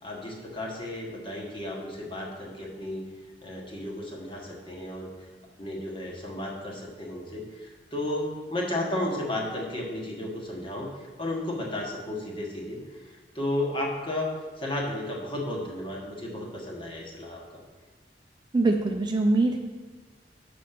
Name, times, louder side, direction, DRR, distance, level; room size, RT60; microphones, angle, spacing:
voice 1, 0.0-3.0 3.4-5.1 5.6-10.9 11.2-17.6, left 1 dB, 30° left, -1 dB, 1.3 m, -33 dB
voice 2, 18.5-19.6, right 2 dB, 25° right, 3 dB, 0.5 m, -23 dB
6.8 x 5.1 x 5.8 m, 1.3 s
head